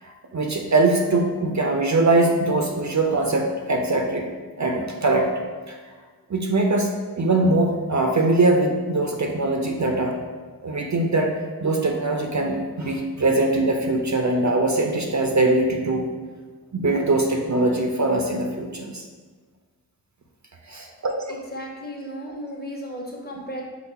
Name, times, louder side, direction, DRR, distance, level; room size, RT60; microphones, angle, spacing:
voice 1, 0.0-4.3 4.6-5.3 5.7-5.8 6.3-10.2 10.6-11.3 11.6-16.1 16.7-19.0 20.7-21.1, right 2 dB, 45° right, 2 dB, 0.5 m, -22 dB
voice 2, 21.3-23.6, equal, 25° left, -2 dB, 0.9 m, -35 dB
5.6 x 2.1 x 4.5 m, 1.4 s
wide cardioid pair, 40°, 39 cm